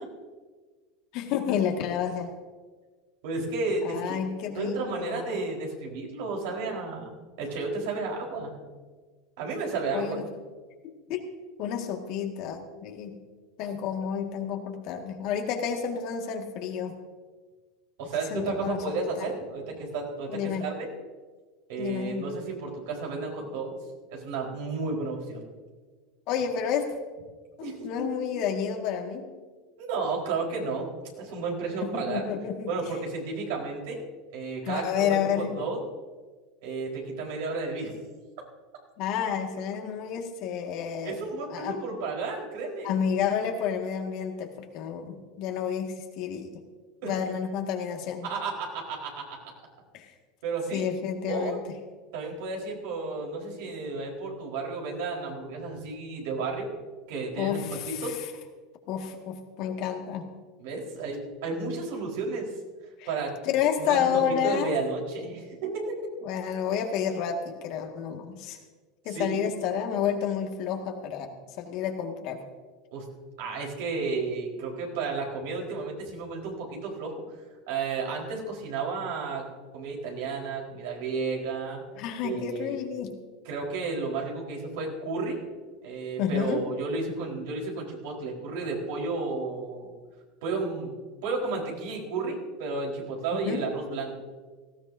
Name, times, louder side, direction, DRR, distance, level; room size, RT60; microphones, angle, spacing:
voice 1, 1.1-2.3 3.8-5.4 9.9-10.3 11.1-11.2 11.6-13.2 13.6-17.0 18.3-19.3 20.3-20.7 21.8-22.3 26.3-27.0 27.6-29.2 31.8-32.7 34.6-35.5 39.0-41.2 41.5-41.8 42.8-46.6 47.0-48.3 49.9-50.1 50.7-51.6 57.4-58.1 58.9-60.3 63.0-63.1 63.5-64.8 66.2-68.6 69.1-72.4 82.0-83.2 86.2-86.6 93.3-93.6, left 8 dB, 60° left, 3 dB, 1.8 m, -30 dB
voice 2, 3.2-4.2 4.5-8.5 9.4-10.2 18.0-20.9 21.7-23.8 24.1-25.4 27.6-28.1 29.8-30.9 31.2-32.2 32.7-34.0 34.3-35.8 36.6-37.9 41.0-42.9 47.0-47.2 48.2-49.5 50.4-50.9 51.3-51.6 52.1-56.7 57.1-58.2 60.6-62.5 63.1-63.4 63.8-65.9 69.1-69.3 72.9-73.1 73.4-77.1 77.7-79.4 79.7-81.8 82.2-82.8 83.4-85.5 85.8-89.9 90.4-90.9 91.2-94.1, right 4 dB, 75° right, -1 dB, 4.2 m, -32 dB
18.5 x 15.0 x 2.7 m, 1.4 s
supercardioid pair, 110°, 0 cm